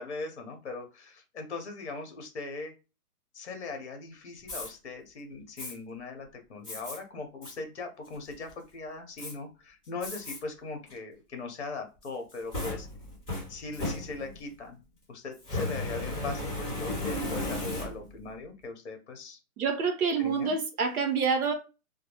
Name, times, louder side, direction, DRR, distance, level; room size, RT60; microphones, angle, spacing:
voice 1, 0.0-2.7 3.3-12.9 13.5-14.8 15.1-19.4 20.2-20.5, left 3 dB, 50° left, 0.9 m, -40 dB
Fire, 4.4-4.7 5.6-5.7 6.6-7.0 7.4-7.5 8.1-8.5 9.2-9.3 10.0-10.4 10.9-11.0 12.0-14.5 15.4-18.2, left 2 dB, 5° left, 0.7 m, -35 dB
voice 2, 19.6-21.5, right 5 dB, 75° right, 0.9 m, -27 dB
2.2 x 2.1 x 2.9 m
hypercardioid pair, 175°, 45 cm